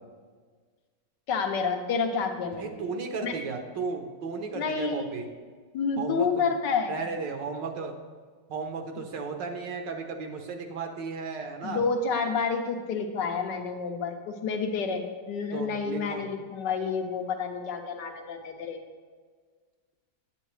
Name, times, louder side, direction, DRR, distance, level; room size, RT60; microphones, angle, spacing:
voice 1, 1.3-2.8 3.2-3.4 4.5-5.1 5.7-7.0 11.6-18.8, left 5 dB, 75° left, 5 dB, 1.4 m, -29 dB
voice 2, 2.6-5.3 6.0-6.5 6.9-7.9 8.5-11.8 15.5-16.3, right 5 dB, 80° right, 4 dB, 1.5 m, -34 dB
9.0 x 8.9 x 3.2 m, 1.5 s
omnidirectional pair, 1.9 m